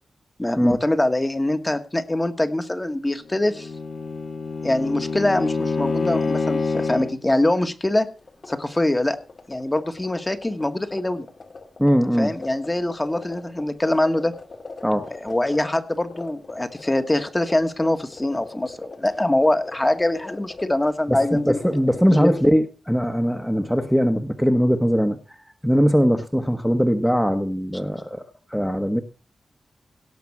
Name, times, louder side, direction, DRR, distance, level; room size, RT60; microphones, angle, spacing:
voice 1, 0.4-3.7 4.6-8.1 8.5-9.2 9.5-11.3 12.2-14.3 15.2-21.6 22.2-22.4, left 1 dB, 15° left, 8 dB, 1.4 m, -23 dB
Bowed string instrument, 3.3-7.2, left 4 dB, 65° left, 1.9 m, -26 dB
sound 1, 8.2-22.5, left 3 dB, 45° left, 2.1 m, -41 dB
voice 2, 11.8-12.3 14.8-15.1 21.1-25.2 25.6-28.2 28.5-29.0, equal, ahead, 6 dB, 1.1 m, -20 dB
17.5 x 6.0 x 7.2 m, 0.38 s
wide cardioid pair, 95°, 0 cm